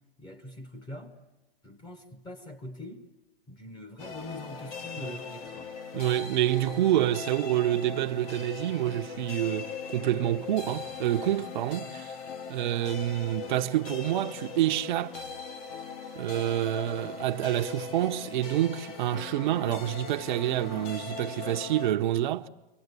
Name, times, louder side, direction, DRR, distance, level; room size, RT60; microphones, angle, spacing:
voice 1, 0.2-1.2 1.6-3.1 3.5-5.7, left 1 dB, 15° left, 1.6 m, -43 dB
sound 1, 4.0-21.9, left 5 dB, 40° left, 2.1 m, -40 dB
voice 2, 5.9-12.1 12.5-15.2 16.1-22.5, right 13 dB, 50° right, 1.0 m, -28 dB
30.0 x 24.0 x 8.3 m
hypercardioid pair, 145°, 30 cm